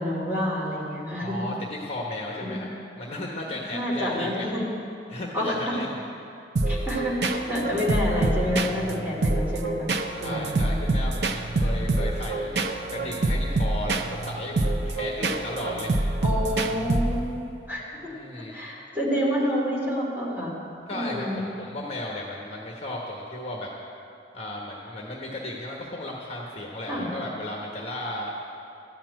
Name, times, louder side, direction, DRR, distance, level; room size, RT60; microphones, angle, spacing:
voice 1, 0.0-1.4 2.4-2.6 3.7-4.6 5.3-5.7 6.7-9.9 10.2-10.8 11.7-11.8 16.2-17.3 17.7-18.1 18.4-20.5 20.9-21.4 26.9-27.1, equal, 10° right, -6 dB, 2.9 m, -28 dB
voice 2, 1.2-2.7 3.0-4.5 5.1-6.0 10.1-12.5 12.9-15.9 17.9-18.5 20.9-23.7 24.3-28.3, left 1 dB, 35° left, -2 dB, 1.2 m, -35 dB
sound 1, 6.6-17.4, right 2 dB, 70° right, 0.7 m, -26 dB
13.5 x 5.9 x 9.1 m, 2.7 s
head